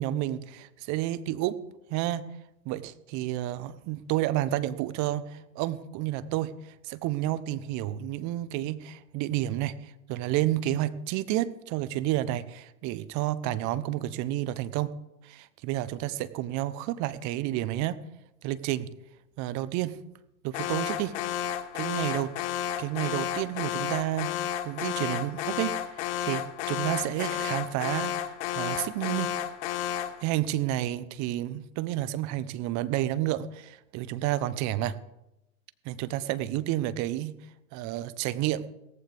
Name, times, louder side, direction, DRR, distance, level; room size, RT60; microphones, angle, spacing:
voice 1, 0.0-1.6 1.9-2.3 2.6-6.5 6.8-14.9 15.2-18.0 18.4-18.9 19.4-19.9 20.4-21.1 21.7-22.3 22.8-24.3 24.6-29.3 30.2-35.0 35.8-37.4 37.7-38.7, right 14 dB, 40° right, 15 dB, 1.0 m, -30 dB
Alarm, 20.5-30.2, left 10 dB, 55° left, 1.3 m, -32 dB
17.5 x 15.0 x 3.6 m, 0.89 s
hypercardioid pair, 105°, 43 cm